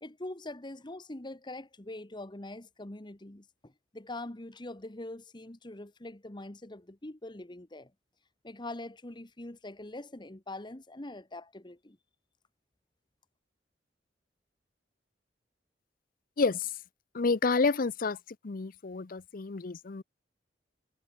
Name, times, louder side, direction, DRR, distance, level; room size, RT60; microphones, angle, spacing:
voice 1, 0.0-7.9 8.4-12.0, left 2 dB, 25° left, 1.3 m, -43 dB
voice 2, 16.4-16.7 17.1-18.2 18.4-20.0, left 4 dB, 50° left, 0.6 m, -29 dB
head